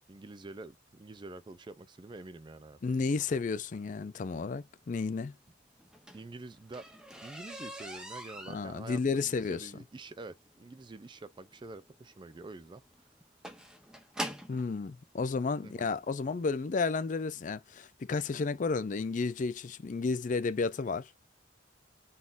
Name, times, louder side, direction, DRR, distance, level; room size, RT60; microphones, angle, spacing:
voice 1, 0.1-3.0 6.1-6.9 7.2-12.8 15.6-15.9, right 2 dB, 25° right, 0.4 m, -47 dB
voice 2, 2.8-5.3 8.5-9.7 14.5-21.1, left 4 dB, 40° left, 0.4 m, -32 dB
sound 1, 5.8-14.7 15.6-15.7 16.2-16.4 16.7-16.8 17.2-17.3, equal, 5° right, 0.7 m, -44 dB
4.1 x 3.6 x 2.5 m
head